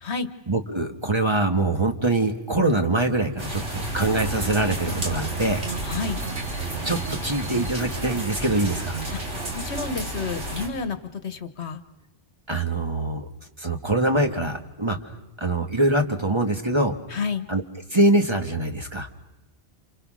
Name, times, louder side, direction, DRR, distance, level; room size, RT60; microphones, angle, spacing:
voice 1, 0.5-5.6 6.8-9.0 12.5-13.3 13.6-15.0 15.4-16.9 17.5-17.6 17.9-19.1, right 2 dB, 25° right, 4 dB, 1.6 m, -23 dB
sound 1, 3.4-10.7, right 1 dB, 85° right, 4.0 m, -32 dB
sound 2, 3.9-10.0, right 4 dB, 60° right, 1.4 m, -36 dB
voice 2, 5.8-6.2 9.1-11.8 17.1-17.5, left 5 dB, 70° left, 11 dB, 1.5 m, -30 dB
29.5 x 28.0 x 6.3 m, 0.98 s
omnidirectional pair, 1.2 m